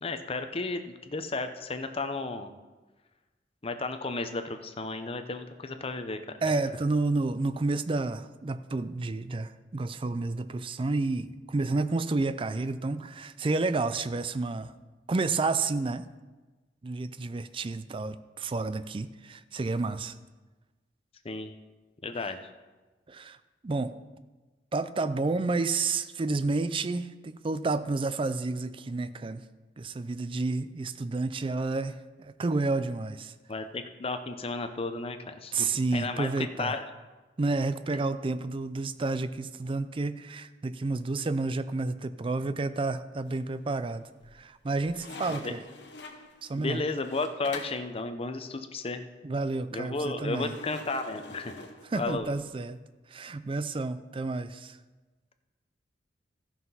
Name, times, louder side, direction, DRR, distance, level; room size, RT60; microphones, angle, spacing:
voice 1, 0.0-2.5 3.6-6.2 21.2-21.5 22.0-22.4 33.5-36.8 45.3-45.5 46.6-49.0 49.7-51.5 51.9-52.3, left 3 dB, 35° left, 8 dB, 0.7 m, -33 dB
voice 2, 6.4-14.7 15.1-16.1 16.8-20.1 23.1-23.4 23.6-24.0 24.7-29.5 29.8-33.3 35.5-36.7 37.4-44.1 44.3-45.6 46.4-46.8 49.2-50.5 51.9-52.8 53.1-54.8, right 3 dB, 30° right, 13 dB, 0.4 m, -30 dB
sound 1, 43.2-43.8 44.2-47.9 50.3-52.4, left 3 dB, 85° left, 1.1 m, -45 dB
13.5 x 5.8 x 5.5 m, 1.2 s
head